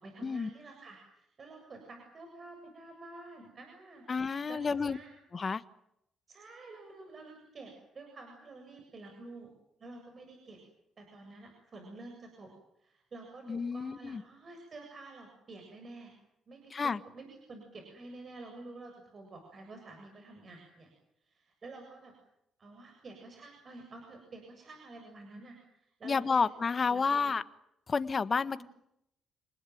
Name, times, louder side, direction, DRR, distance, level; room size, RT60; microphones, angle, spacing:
voice 1, 0.0-5.1 6.3-9.5 9.8-10.6 11.0-12.5 12.8-16.1 16.5-16.7 17.1-20.9 21.2-22.1 22.6-26.5 26.9-27.3, right 2 dB, 45° right, 3 dB, 7.5 m, -50 dB
voice 2, 4.1-5.0 5.3-5.6 13.5-14.2 16.7-17.0 26.0-27.4 27.9-28.6, left 5 dB, 35° left, 13 dB, 1.4 m, -30 dB
28.5 x 20.0 x 9.3 m, 0.79 s
cardioid pair, 90°, 0 cm